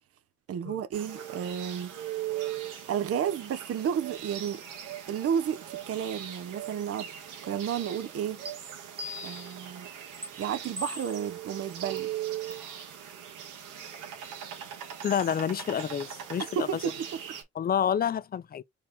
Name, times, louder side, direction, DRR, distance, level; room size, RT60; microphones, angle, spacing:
voice 1, 0.5-1.9 2.9-4.6 5.1-7.1 7.4-8.4 9.2-9.9 10.4-12.1 16.5-17.2, right 8 dB, 50° right, 0.7 m, -32 dB
sound 1, 0.9-17.4, right 10 dB, 90° right, 1.6 m, -40 dB
sound 2, 8.5-8.6 9.0-9.6 10.2-10.3 10.8-11.3 12.0-12.1 12.5-12.7, left 1 dB, 20° right, 1.2 m, -39 dB
voice 2, 15.0-16.7 17.6-18.6, left 8 dB, 30° left, 0.4 m, -28 dB
4.6 x 2.8 x 3.4 m
cardioid pair, 90°, 30 cm